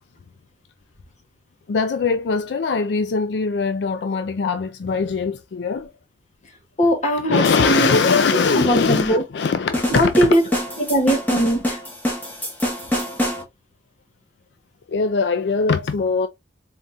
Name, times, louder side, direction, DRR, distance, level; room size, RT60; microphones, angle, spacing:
voice 1, 1.7-5.9 7.3-10.3 14.9-16.3, left 5 dB, 75° left, 0.4 m, -21 dB
voice 2, 6.8-8.0 8.5-9.2 9.9-10.4 10.8-11.8, right 1 dB, 40° left, 1.6 m, -19 dB
sound 1, 9.7-13.4, left 1 dB, 10° left, 1.6 m, -25 dB
4.1 x 3.7 x 2.7 m
head